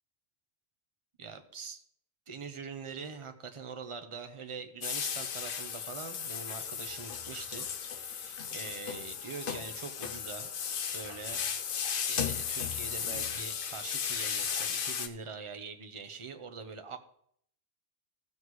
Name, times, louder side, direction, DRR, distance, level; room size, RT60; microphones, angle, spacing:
voice 1, 1.2-1.8 2.3-10.5 10.9-11.4 12.1-17.0, right 5 dB, 30° right, 6 dB, 0.8 m, -43 dB
sound 1, 4.8-15.1, left 7 dB, 55° left, 0.8 m, -35 dB
15.0 x 7.5 x 3.1 m, 0.68 s
omnidirectional pair, 1.1 m